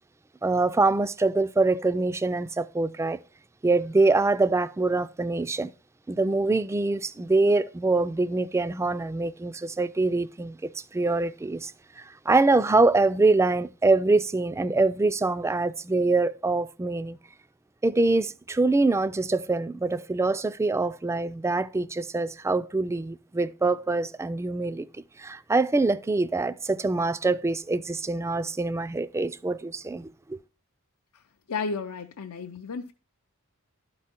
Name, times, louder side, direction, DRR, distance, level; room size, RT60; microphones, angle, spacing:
voice 1, 0.4-3.2 3.6-5.7 6.1-11.7 12.0-17.2 17.8-24.9 25.2-30.4, right 3 dB, 10° right, 0.3 m, -24 dB
voice 2, 31.5-32.9, left 4 dB, 80° left, 0.5 m, -33 dB
11.5 x 4.7 x 4.3 m
head